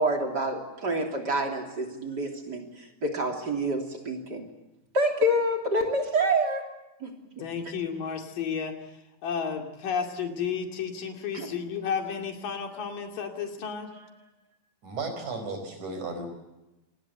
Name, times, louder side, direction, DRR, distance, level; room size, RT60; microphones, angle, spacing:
voice 1, 0.0-2.7 3.0-4.4 4.9-6.7 7.0-7.4 11.3-11.5, right 1 dB, 30° right, 3 dB, 3.4 m, -27 dB
voice 2, 7.4-8.8 9.2-13.9, left 6 dB, 75° left, 4 dB, 4.1 m, -32 dB
voice 3, 13.9-14.3 14.8-16.3, right 3 dB, 60° right, 7 dB, 6.1 m, -35 dB
27.0 x 20.0 x 8.0 m, 0.99 s
omnidirectional pair, 4.0 m